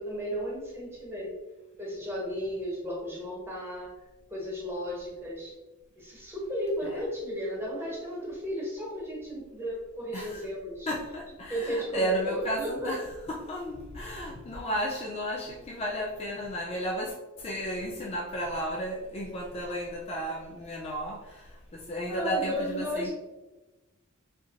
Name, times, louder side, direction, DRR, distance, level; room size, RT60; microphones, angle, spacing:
voice 1, 0.0-1.4 1.8-3.9 4.3-5.5 6.0-10.9 11.5-12.9 22.1-23.1, equal, 10° right, -4 dB, 1.0 m, -34 dB
voice 2, 10.1-10.4 10.9-23.1, equal, 30° left, -1 dB, 0.3 m, -33 dB
4.3 x 2.8 x 2.4 m, 1.1 s
head